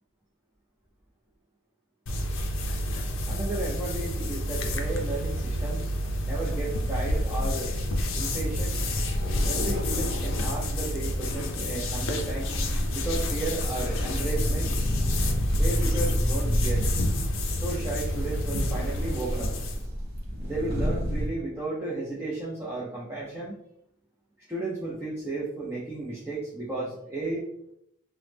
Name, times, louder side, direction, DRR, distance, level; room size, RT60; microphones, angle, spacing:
sound 1, 2.1-19.9, left 1 dB, 60° left, 0.5 m, -29 dB
voice 1, 3.3-5.9 6.2-7.7 8.1-8.7 9.4-12.6 12.9-14.7 15.6-17.0 17.5-19.5 20.4-23.5 24.5-27.4, right 2 dB, 10° right, -7 dB, 0.5 m, -33 dB
sound 2, 7.4-13.5, left 1 dB, 25° left, 1.3 m, -44 dB
sound 3, 12.5-21.3, equal, 45° right, 0.7 m, -29 dB
3.0 x 2.0 x 3.3 m, 0.75 s
head